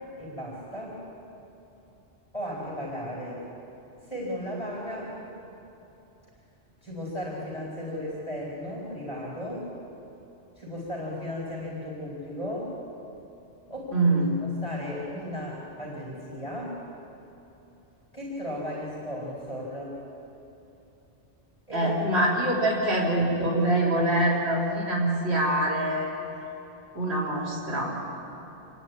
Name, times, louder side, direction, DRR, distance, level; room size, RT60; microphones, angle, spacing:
voice 1, 0.2-1.0 2.3-3.4 4.1-5.1 6.8-9.7 10.6-12.8 13.7-14.1 14.6-16.8 18.1-20.0 21.7-21.9 22.5-22.6, left 1 dB, 25° left, -4 dB, 4.3 m, -35 dB
voice 2, 13.9-14.3 21.7-26.1 26.9-28.0, right 1 dB, 70° right, -6 dB, 3.7 m, -24 dB
27.5 x 10.0 x 9.5 m, 2.9 s
omnidirectional pair, 1.1 m